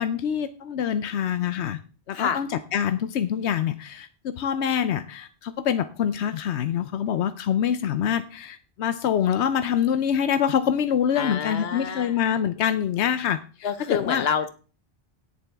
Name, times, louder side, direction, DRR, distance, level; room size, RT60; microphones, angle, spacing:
voice 1, 0.0-1.8 2.1-14.3, left 8 dB, 90° left, 11 dB, 1.0 m, -25 dB
voice 2, 11.2-12.2 13.6-14.5, left 7 dB, 65° left, 11 dB, 1.2 m, -27 dB
17.5 x 7.1 x 3.4 m, 0.36 s
omnidirectional pair, 1.1 m